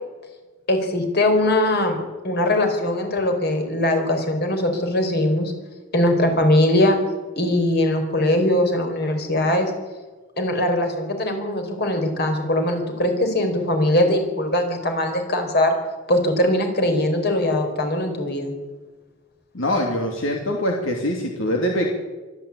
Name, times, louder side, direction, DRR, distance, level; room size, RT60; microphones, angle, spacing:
voice 1, 0.7-2.0 2.2-5.5 5.9-7.0 7.4-9.7 10.4-15.7 16.1-18.5, left 1 dB, 55° left, 5 dB, 4.5 m, -21 dB
voice 2, 19.5-21.9, equal, 75° left, 1 dB, 2.8 m, -23 dB
25.0 x 12.5 x 8.6 m, 1.3 s
head